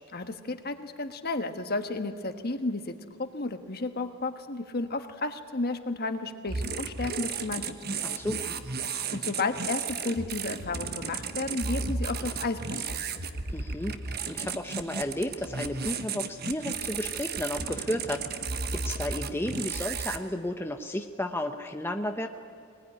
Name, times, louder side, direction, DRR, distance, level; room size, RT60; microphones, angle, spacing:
voice 1, 0.1-7.7 8.1-8.2 9.1-13.1, left 2 dB, 45° left, 8 dB, 1.4 m, -33 dB
sound 1, 6.5-20.2, right 4 dB, 45° right, 1.2 m, -34 dB
voice 2, 8.0-8.5 13.5-14.0 14.3-18.4 18.7-22.3, left 1 dB, 10° left, 4 dB, 0.8 m, -33 dB
22.5 x 20.5 x 10.0 m, 2.4 s
head